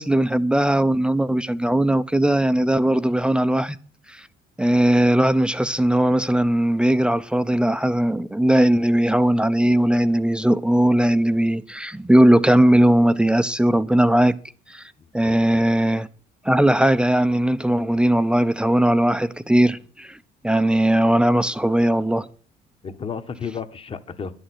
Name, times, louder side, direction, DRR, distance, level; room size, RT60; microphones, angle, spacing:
voice 1, 0.0-3.8 4.1-4.3 4.6-14.4 14.7-16.1 16.4-20.2 20.4-22.3, right 1 dB, 5° right, 0.6 m, -19 dB
voice 2, 15.0-15.7 22.8-24.3, left 6 dB, 35° left, 1.2 m, -33 dB
11.0 x 6.5 x 7.8 m
cardioid pair, 110°, 17 cm